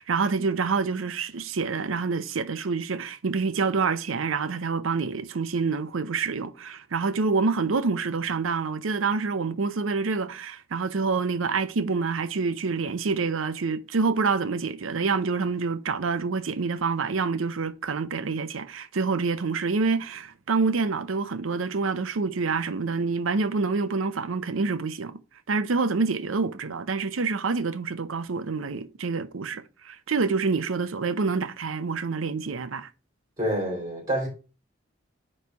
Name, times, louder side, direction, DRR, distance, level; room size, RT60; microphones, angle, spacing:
voice 1, 0.0-25.2 25.5-32.9, right 4 dB, 85° right, 0.6 m, -27 dB
voice 2, 33.4-34.3, right 1 dB, 20° right, 3.4 m, -27 dB
9.5 x 3.2 x 4.6 m
head